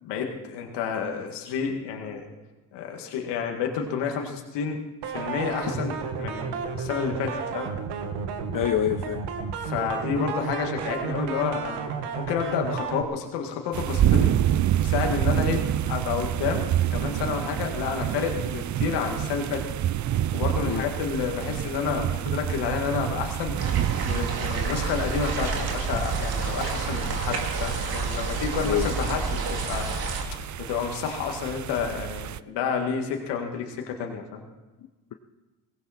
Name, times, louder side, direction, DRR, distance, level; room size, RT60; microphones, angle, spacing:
voice 1, 0.0-2.3 2.7-6.5 6.8-7.7 9.6-11.8 12.2-14.3 14.8-19.6 20.3-23.6 24.1-29.9 30.3-34.4, left 6 dB, 80° left, 2 dB, 2.1 m, -30 dB
sound 1, 5.0-13.0, right 5 dB, 80° right, 1.6 m, -32 dB
voice 2, 8.5-9.2 20.6-20.9 28.6-29.1 34.8-35.1, left 11 dB, 50° left, 6 dB, 1.0 m, -28 dB
sound 2, 13.7-32.4, right 11 dB, 45° right, 0.6 m, -28 dB
sound 3, 23.6-30.2, right 4 dB, 60° right, 2.7 m, -29 dB
18.5 x 16.5 x 4.3 m, 1.2 s
supercardioid pair, 75°, 41 cm